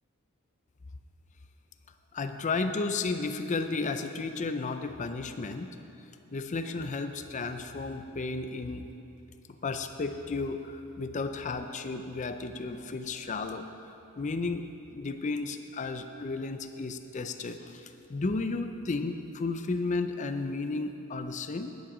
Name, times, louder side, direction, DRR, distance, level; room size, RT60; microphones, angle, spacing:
voice 1, 2.1-5.8 6.3-8.9 9.6-13.9 14.2-14.7 14.9-21.8, left 3 dB, 35° left, 8 dB, 0.4 m, -33 dB
10.5 x 8.6 x 6.1 m, 2.7 s
head